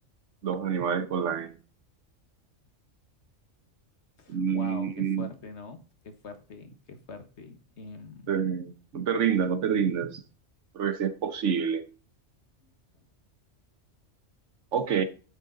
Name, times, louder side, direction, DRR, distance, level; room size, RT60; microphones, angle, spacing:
voice 1, 0.4-1.6 4.3-5.3 8.3-10.2 10.7-11.9 14.7-15.0, right 7 dB, 75° right, 1.3 m, -27 dB
voice 2, 4.2-5.8 6.0-8.3, left 3 dB, 65° left, 1.5 m, -44 dB
9.5 x 6.4 x 3.9 m
omnidirectional pair, 1.3 m